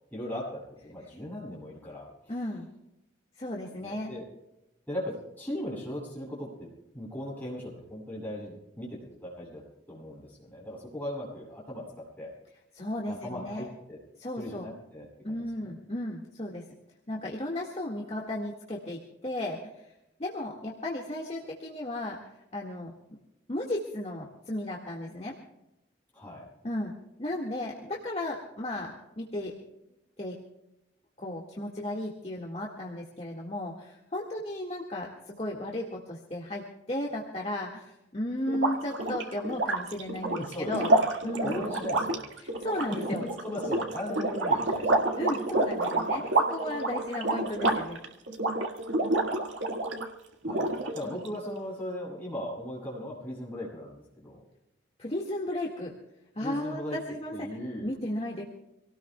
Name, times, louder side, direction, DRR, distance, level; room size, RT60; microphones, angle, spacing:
voice 1, 0.1-2.3 3.8-4.3 4.9-6.7 6.9-12.3 13.1-14.0 14.4-15.7 26.1-26.5 40.2-41.1 41.4-42.3 42.7-45.0 46.1-46.3 50.5-54.4 56.4-57.0 57.3-57.9, left 1 dB, 10° left, -6 dB, 7.7 m, -38 dB
voice 2, 2.3-2.7 3.4-4.1 12.7-13.7 14.2-14.7 15.2-16.6 17.1-19.7 20.2-22.2 22.5-22.9 23.5-25.4 26.6-26.9 27.2-29.5 30.2-30.3 31.2-40.9 41.2-41.6 42.4-43.2 45.2-48.0 51.0-51.2 55.0-55.9 56.4-57.5 57.8-58.4, left 1 dB, 35° left, -2 dB, 1.9 m, -34 dB
sound 1, 38.5-50.1 50.4-51.3, right 2 dB, 85° right, 1.9 m, -28 dB
27.0 x 18.5 x 2.3 m, 0.91 s
head